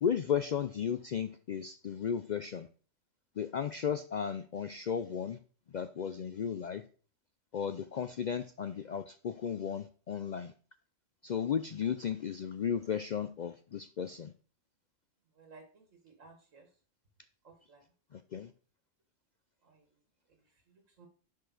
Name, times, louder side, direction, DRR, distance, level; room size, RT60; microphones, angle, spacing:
voice 1, 0.0-2.7 3.4-5.4 5.7-6.8 7.5-10.5 11.2-14.3 18.1-18.5, left 7 dB, 75° left, 10 dB, 0.4 m, -34 dB
voice 2, 15.4-16.7 17.4-17.8 19.6-19.8 20.7-21.1, right 3 dB, 80° right, 3 dB, 1.8 m, -57 dB
10.0 x 5.4 x 4.0 m, 0.40 s
omnidirectional pair, 1.3 m